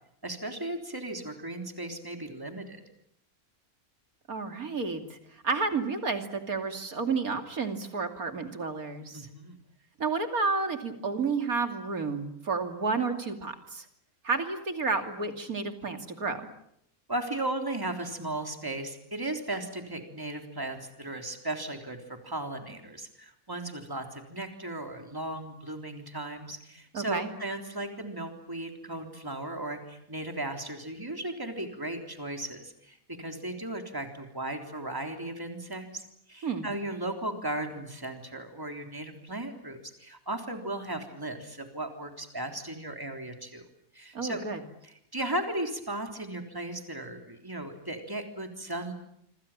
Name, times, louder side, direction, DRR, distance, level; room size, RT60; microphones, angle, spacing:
voice 1, 0.2-2.8 9.1-9.6 17.1-43.6 43.9-44.4 44.8-48.9, right 1 dB, 15° right, 5 dB, 3.6 m, -36 dB
voice 2, 4.3-9.2 10.0-13.9 14.2-16.4 26.9-27.3 36.4-36.7 44.1-44.6, right 4 dB, 75° right, 6 dB, 3.2 m, -31 dB
26.5 x 26.0 x 7.4 m, 0.74 s
omnidirectional pair, 1.5 m